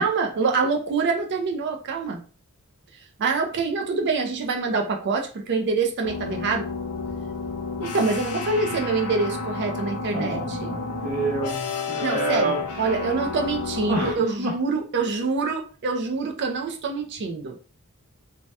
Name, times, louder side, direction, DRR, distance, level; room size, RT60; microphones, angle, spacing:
voice 1, 0.0-2.2 3.2-6.7 7.8-10.8 12.0-17.6, right 4 dB, 50° right, 3 dB, 0.4 m, -25 dB
sound 1, 6.0-14.1, left 4 dB, 90° left, 0.7 m, -31 dB
voice 2, 10.1-12.6 13.9-14.5, right 2 dB, 75° right, -2 dB, 0.9 m, -28 dB
2.7 x 2.2 x 3.3 m, 0.38 s
head